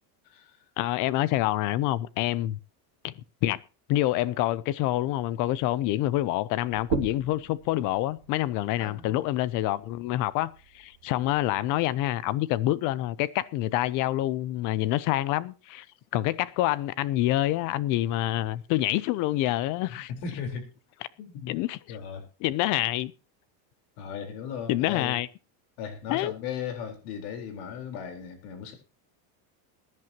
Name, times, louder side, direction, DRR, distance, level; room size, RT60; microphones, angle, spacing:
voice 1, 0.2-0.6 8.8-9.2 19.9-20.7 21.2-21.6 21.9-22.3 24.0-25.2 25.8-28.7, left 7 dB, 70° left, 4.3 m, -37 dB
voice 2, 0.8-2.6 3.0-3.1 3.4-3.6 3.9-15.9 16.1-20.1 21.5-22.0 22.4-23.1 24.7-25.3 26.1-26.3, left 15 dB, 40° left, 0.5 m, -27 dB
sound 1, 6.7-11.9, right 12 dB, 90° right, 2.5 m, -39 dB
22.0 x 11.0 x 2.9 m
cardioid pair, 170°, 48 cm